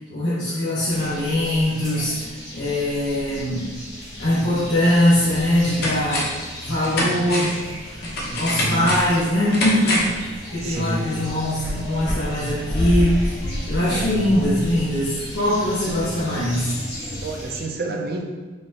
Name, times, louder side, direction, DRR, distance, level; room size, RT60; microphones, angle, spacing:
voice 1, 0.1-2.2 2.5-3.7 4.2-6.3 6.6-7.6 7.9-16.7, left 1 dB, 85° left, -10 dB, 1.2 m, -22 dB
sound 1, 0.9-17.6, equal, 25° left, 1.5 m, -32 dB
sound 2, 5.4-6.5 6.8-10.2 10.5-10.6, left 1 dB, 60° left, 0.9 m, -26 dB
voice 2, 8.3-9.0 10.6-11.1 13.9-14.4 17.2-18.2, right 2 dB, 55° right, 2 dB, 0.5 m, -29 dB
4.5 x 3.0 x 2.9 m, 1.3 s
head